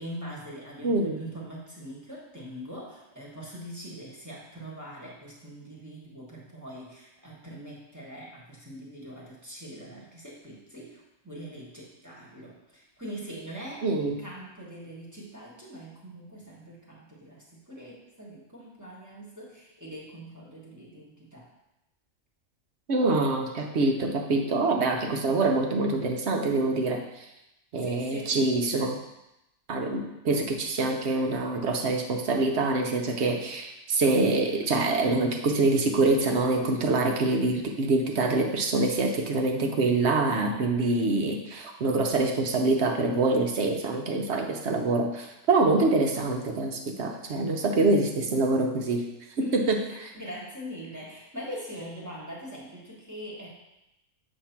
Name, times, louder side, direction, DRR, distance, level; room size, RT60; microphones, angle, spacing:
voice 1, 0.0-21.5 27.8-28.4 49.4-53.5, equal, 15° right, -5 dB, 1.3 m, -42 dB
voice 2, 0.8-1.2 13.8-14.2 22.9-27.3 27.7-29.0 29.7-49.1 49.4-49.8, right 3 dB, 65° right, 2 dB, 1.0 m, -25 dB
7.7 x 2.7 x 5.7 m, 0.91 s
omnidirectional pair, 1.3 m